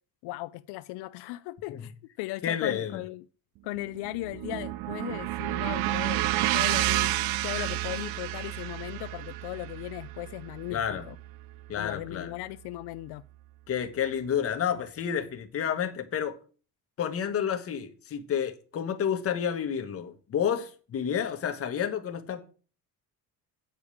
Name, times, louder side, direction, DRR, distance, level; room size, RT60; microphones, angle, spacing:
voice 1, 0.2-3.2 3.6-6.3 6.5-7.2 7.4-11.2 11.8-13.2, left 18 dB, 80° left, 0.5 m, -37 dB
voice 2, 2.4-3.0 10.7-11.1 11.7-12.4 13.7-16.4 17.0-22.4, left 8 dB, 35° left, 1.2 m, -30 dB
sound 1, 3.8-12.0, right 16 dB, 65° right, 0.5 m, -30 dB
8.9 x 5.1 x 7.0 m
cardioid pair, 155°, 39 cm